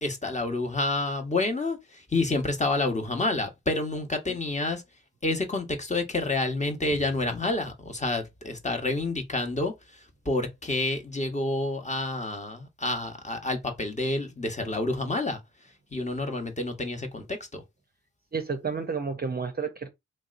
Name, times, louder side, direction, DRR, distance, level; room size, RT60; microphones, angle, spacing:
voice 1, 0.0-4.8 5.2-9.7 10.2-15.4 15.9-17.6, left 2 dB, 20° left, 1.1 m, -29 dB
voice 2, 18.3-19.9, right 5 dB, 25° right, 0.6 m, -31 dB
3.2 x 2.7 x 2.5 m
hypercardioid pair, 40°, 34 cm